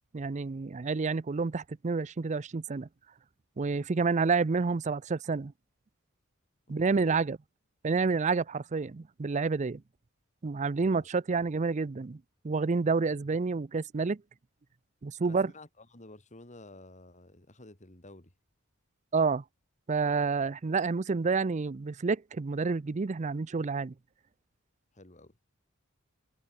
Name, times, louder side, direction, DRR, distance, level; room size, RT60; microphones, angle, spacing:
voice 1, 0.1-2.9 3.6-5.5 6.7-7.4 7.8-9.8 10.4-12.2 12.4-14.2 15.0-15.5 19.1-19.4 19.9-23.9, right 4 dB, 35° right, 0.5 m, -29 dB
voice 2, 6.7-7.2 10.8-11.1 15.2-18.3 24.9-25.4, left 2 dB, 35° left, 3.2 m, -51 dB
head